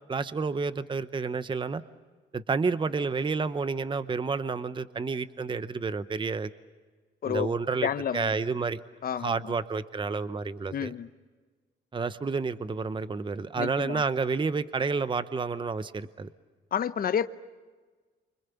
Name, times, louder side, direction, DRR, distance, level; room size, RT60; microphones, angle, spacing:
voice 1, 0.1-1.8 2.3-6.5 7.2-8.8 9.2-10.9 11.9-16.3, right 4 dB, 25° right, 0.8 m, -30 dB
voice 2, 7.8-8.3 9.0-9.4 10.7-11.1 13.6-14.0 16.7-17.3, left 8 dB, 45° left, 0.8 m, -29 dB
29.0 x 25.5 x 7.1 m
cardioid pair, 90°, 20 cm